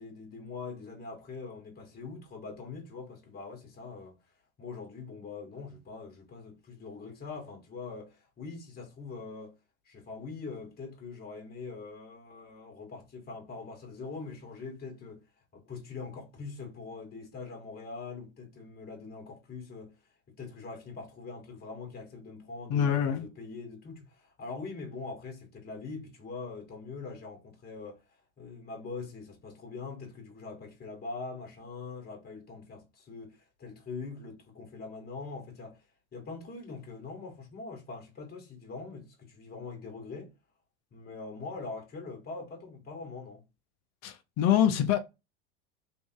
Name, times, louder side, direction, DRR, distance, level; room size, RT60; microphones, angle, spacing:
voice 1, 0.0-4.2 4.6-9.6 9.9-15.2 15.5-20.0 20.3-28.0 28.4-35.8 36.1-40.3 40.9-43.5, left 4 dB, 30° left, 1.8 m, -43 dB
voice 2, 22.7-23.2 44.0-45.0, left 9 dB, 55° left, 1.0 m, -25 dB
3.5 x 2.7 x 4.6 m
hypercardioid pair, 85°, 31 cm